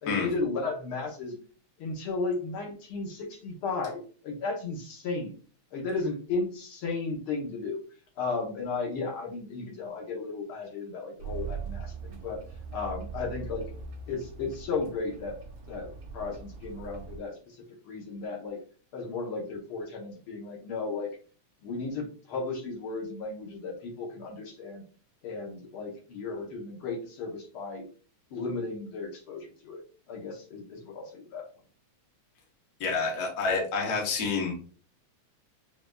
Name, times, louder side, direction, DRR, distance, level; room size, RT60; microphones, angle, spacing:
voice 1, 0.0-1.4 1.8-5.3 5.7-7.8 8.2-12.4 12.7-13.6 14.1-15.4 15.7-15.9 16.1-17.6 17.8-18.6 18.9-21.1 21.6-24.8 25.2-27.8 28.3-29.8 30.1-31.5, left 4 dB, 60° left, 0 dB, 1.4 m, -34 dB
sound 1, 11.2-17.2, right 5 dB, 65° right, 1.7 m, -41 dB
voice 2, 32.8-34.6, left 4 dB, 85° left, 0 dB, 0.8 m, -28 dB
6.1 x 2.6 x 2.3 m, 0.39 s
omnidirectional pair, 3.3 m